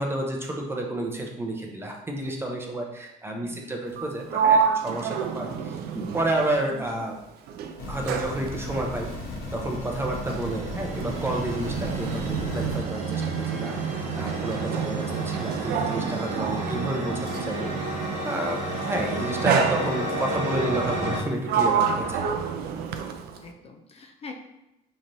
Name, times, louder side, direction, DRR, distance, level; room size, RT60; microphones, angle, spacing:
voice 1, 0.0-7.1 7.9-9.1 9.5-13.8 14.2-17.7 18.2-22.3, right 1 dB, 15° right, 1 dB, 0.6 m, -30 dB
voice 2, 3.2-3.7 6.7-6.9 19.1-19.2 23.4-24.3, left 4 dB, 35° left, 2 dB, 0.4 m, -43 dB
Sliding door, 3.9-7.2 7.5-17.6 18.5-18.8 19.5-20.4 21.0-23.5, right 7 dB, 70° right, 0.4 m, -29 dB
sound 1, 7.8-12.8, left 2 dB, 60° left, 0.9 m, -36 dB
sound 2, 9.6-21.2, right 2 dB, 45° right, 0.8 m, -32 dB
4.0 x 3.1 x 2.6 m, 0.92 s
cardioid pair, 110°, 17 cm